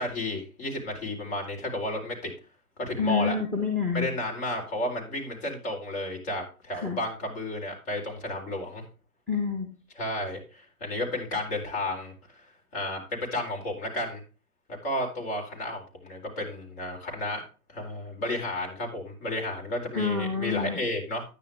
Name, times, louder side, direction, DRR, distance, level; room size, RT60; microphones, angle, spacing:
voice 1, 0.0-2.3 2.8-3.4 3.9-8.8 10.0-12.4 12.7-14.2 14.8-17.4 17.7-21.2, left 1 dB, 40° left, 0 dB, 4.2 m, -32 dB
voice 2, 3.0-4.1 6.8-7.0 9.3-9.7 19.9-20.8, left 5 dB, 5° left, 3 dB, 1.2 m, -27 dB
10.0 x 9.8 x 3.5 m, 0.35 s
hypercardioid pair, 150°, 45 cm